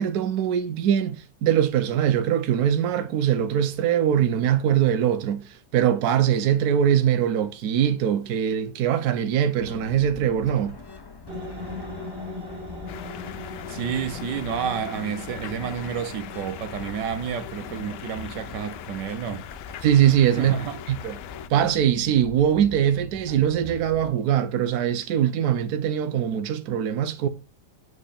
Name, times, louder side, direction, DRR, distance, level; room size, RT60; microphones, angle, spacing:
voice 1, 0.0-10.8 19.8-20.5 20.9-21.2 21.5-27.3, right 9 dB, 70° right, 1.2 m, -22 dB
sound 1, 9.6-24.0, left 4 dB, 20° left, 0.6 m, -43 dB
sound 2, 11.3-18.6, left 2 dB, 35° right, 2.4 m, -40 dB
sound 3, 12.9-21.5, left 11 dB, 90° left, 1.3 m, -41 dB
voice 2, 13.7-19.5 20.4-20.8, right 8 dB, 90° right, 1.6 m, -30 dB
7.7 x 4.0 x 6.7 m
omnidirectional pair, 1.8 m